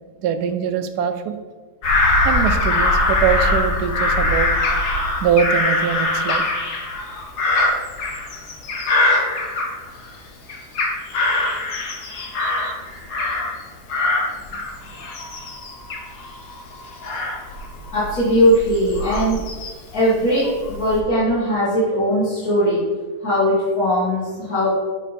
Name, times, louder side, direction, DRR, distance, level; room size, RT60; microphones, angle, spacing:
voice 1, 0.2-1.3 2.2-4.5 5.2-6.5 12.4-12.8, right 8 dB, 85° right, 9 dB, 1.2 m, -22 dB
Bird vocalization bird call bird song / Crow, 1.8-10.2 10.5-13.6 13.9-19.9 20.4-21.0, left 2 dB, 85° left, 1.7 m, -22 dB
voice 2, 17.9-19.4 19.9-22.8 23.2-24.7, equal, 65° left, -12 dB, 2.7 m, -19 dB
9.0 x 4.1 x 4.2 m, 1.4 s
omnidirectional pair, 1.7 m